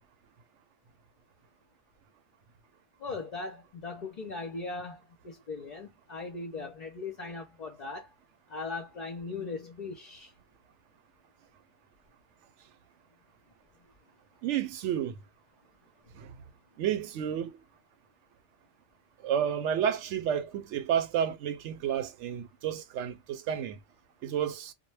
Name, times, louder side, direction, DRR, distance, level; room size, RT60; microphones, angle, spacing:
voice 1, 3.0-8.1 8.5-10.3, left 3 dB, 50° left, 0.5 m, -39 dB
voice 2, 14.4-15.2 16.2-16.3 16.8-17.6 19.2-23.8 24.2-24.7, right 9 dB, 75° right, 0.9 m, -31 dB
2.1 x 2.1 x 3.1 m
omnidirectional pair, 1.3 m